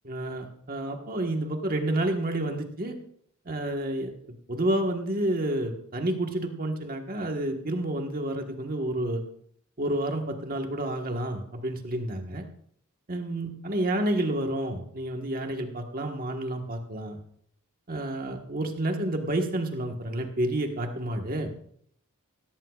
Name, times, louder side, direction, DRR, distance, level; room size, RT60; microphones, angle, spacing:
voice 1, 0.0-3.0 3.4-4.1 4.5-9.2 9.8-12.4 13.1-17.2 17.9-21.5, right 1 dB, 40° right, 3 dB, 1.4 m, -29 dB
16.5 x 14.5 x 2.4 m, 0.64 s
head